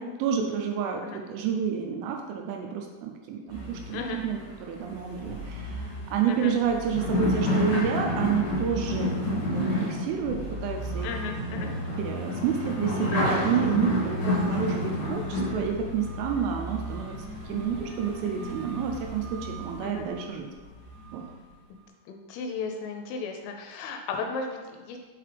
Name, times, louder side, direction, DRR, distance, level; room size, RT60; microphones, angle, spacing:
voice 1, 0.0-5.8 6.1-11.1 11.5-17.1 17.5-20.5 21.1-21.2, right 7 dB, 85° right, 2 dB, 2.9 m, -30 dB
sound 1, 3.5-20.2 20.7-21.3, left 1 dB, 50° left, 2.9 m, -30 dB
voice 2, 11.0-11.7 14.2-14.3 19.8-20.1 22.1-25.0, left 4 dB, 85° left, 3 dB, 3.0 m, -35 dB
7.4 x 4.7 x 3.3 m, 1.3 s
omnidirectional pair, 5.9 m